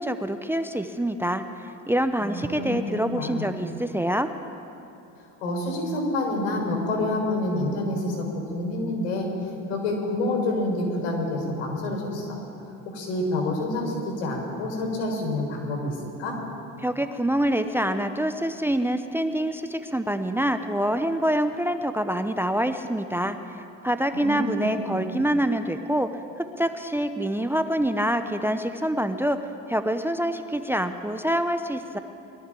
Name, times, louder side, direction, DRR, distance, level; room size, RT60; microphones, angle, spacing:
voice 1, 0.0-4.3 16.8-26.1 26.4-29.4 29.7-32.0, right 1 dB, 5° right, 9 dB, 0.6 m, -26 dB
voice 2, 2.2-2.8 3.2-3.5 5.4-9.3 9.7-12.4 12.9-16.3 24.1-25.0, left 2 dB, 90° left, 0 dB, 4.2 m, -28 dB
22.0 x 13.0 x 3.8 m, 2.8 s
supercardioid pair, 90°, 37 cm